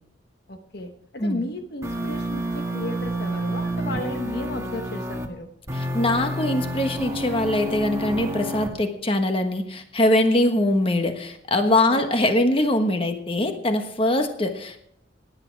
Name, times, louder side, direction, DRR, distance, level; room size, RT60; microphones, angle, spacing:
voice 1, 0.5-5.5 11.9-12.4, left 1 dB, 60° left, 6 dB, 1.1 m, -34 dB
sound 1, 1.8-5.3 5.7-8.7, right 1 dB, 15° right, 1.4 m, -29 dB
voice 2, 5.7-14.8, left 1 dB, 30° left, 6 dB, 1.3 m, -22 dB
17.5 x 10.5 x 4.6 m, 0.73 s
head